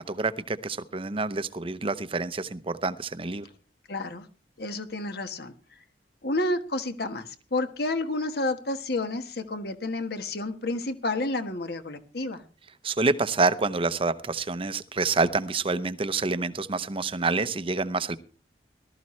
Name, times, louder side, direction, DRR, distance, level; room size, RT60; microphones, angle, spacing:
voice 1, 0.0-3.5 12.8-18.2, right 3 dB, 30° right, 13 dB, 0.7 m, -27 dB
voice 2, 3.9-4.3 4.6-5.5 6.2-12.4, left 2 dB, 65° left, 8 dB, 1.4 m, -30 dB
19.0 x 13.0 x 3.2 m, 0.36 s
head